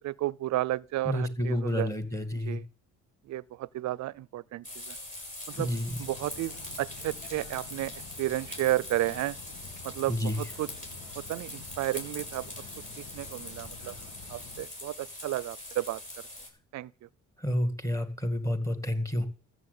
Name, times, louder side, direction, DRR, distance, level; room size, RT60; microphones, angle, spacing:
voice 1, 0.0-1.9 2.5-2.6 3.3-5.0 5.5-5.7 6.0-7.9 8.2-9.4 9.8-10.7 11.2-12.5 13.0-13.9 14.3-16.0 16.7-16.9, right 15 dB, 65° right, 0.5 m, -32 dB
voice 2, 1.1-2.6 5.6-6.0 10.1-10.4 17.4-19.3, left 1 dB, 10° left, 2.1 m, -29 dB
sound 1, 4.6-16.5, left 1 dB, 25° left, 6.2 m, -43 dB
sound 2, 5.5-14.7, left 5 dB, 85° left, 2.1 m, -49 dB
13.5 x 7.8 x 8.2 m
cardioid pair, 90°, 30 cm